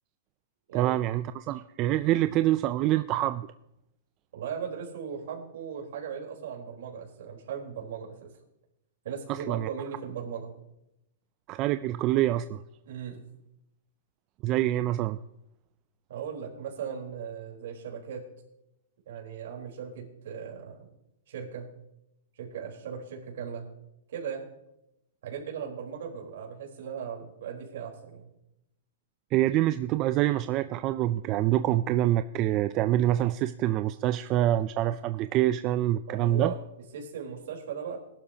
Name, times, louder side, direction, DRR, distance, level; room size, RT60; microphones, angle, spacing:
voice 1, 0.7-3.5 9.3-9.7 11.5-12.6 14.4-15.2 29.3-36.5, right 13 dB, 25° right, 11 dB, 0.3 m, -26 dB
voice 2, 4.3-8.2 9.0-10.6 12.9-13.2 16.1-18.3 19.1-20.9 21.3-21.7 22.4-23.7 24.1-24.5 25.2-28.3 36.1-38.0, right 7 dB, 65° right, -1 dB, 3.9 m, -38 dB
19.0 x 11.5 x 2.8 m, 0.86 s
hypercardioid pair, 160°, 0 cm